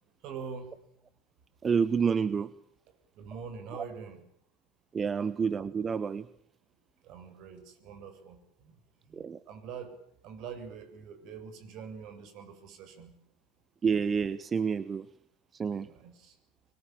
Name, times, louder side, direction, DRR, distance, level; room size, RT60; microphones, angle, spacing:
voice 1, 0.2-0.7 3.2-4.2 7.0-8.4 8.6-8.7 9.1-9.9 10.2-13.1 15.8-16.3, right 6 dB, 50° right, 8 dB, 7.1 m, -44 dB
voice 2, 1.6-2.5 3.7-3.9 4.9-6.3 9.1-9.4 13.8-15.1 15.5-15.9, right 6 dB, 25° right, 16 dB, 1.1 m, -29 dB
25.5 x 24.0 x 9.0 m, 0.69 s
figure-of-eight pair, 80°, 0 cm